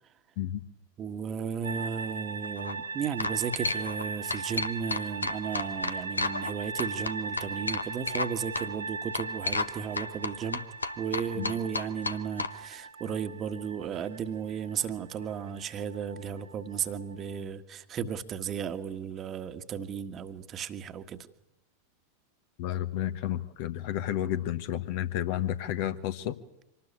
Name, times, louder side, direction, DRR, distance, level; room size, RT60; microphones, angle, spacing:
voice 1, 1.0-10.6 11.0-21.3, right 7 dB, 30° right, 9 dB, 1.5 m, -34 dB
sound 1, 1.6-17.4, right 4 dB, 70° right, 0.9 m, -39 dB
sound 2, 2.4-2.7 3.2-4.0 4.3-6.5 6.8-8.3 8.5-8.7 9.1-9.7 10.0-12.5, left 3 dB, 75° left, 1.0 m, -31 dB
voice 2, 22.6-26.4, left 11 dB, 50° left, 11 dB, 1.3 m, -31 dB
25.5 x 19.5 x 8.8 m, 0.83 s
figure-of-eight pair, 90°, 0 cm